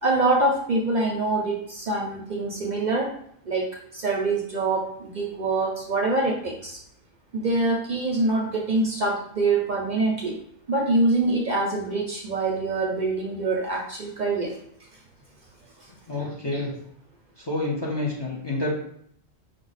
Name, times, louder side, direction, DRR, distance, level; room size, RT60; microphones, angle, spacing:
voice 1, 0.0-3.1 3.5-6.8 7.3-10.4 10.7-14.6, right 2 dB, 55° right, 0 dB, 0.6 m, -25 dB
voice 2, 16.1-16.7 17.4-18.7, left 2 dB, 30° left, -3 dB, 0.6 m, -28 dB
4.9 x 2.0 x 4.0 m, 0.68 s
omnidirectional pair, 1.1 m